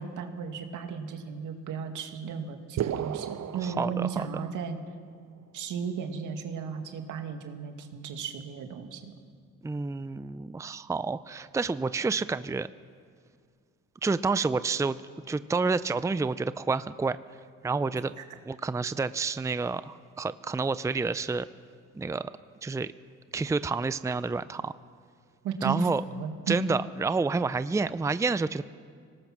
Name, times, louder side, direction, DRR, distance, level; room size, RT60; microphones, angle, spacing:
voice 1, 0.0-4.8 5.5-9.1 18.2-18.3 25.4-26.6, right 6 dB, 80° right, 5 dB, 2.2 m, -35 dB
sound 1, 2.8-4.7, right 10 dB, 60° right, 0.9 m, -34 dB
voice 2, 3.6-4.4 9.6-12.7 14.0-15.0 15.3-17.2 17.6-18.1 18.5-21.5 21.9-22.3 22.6-22.9 23.3-24.7 25.6-26.0 26.5-28.7, right 4 dB, 10° right, 14 dB, 0.5 m, -29 dB
25.5 x 19.0 x 6.0 m, 2.1 s
cardioid pair, 90°, 30 cm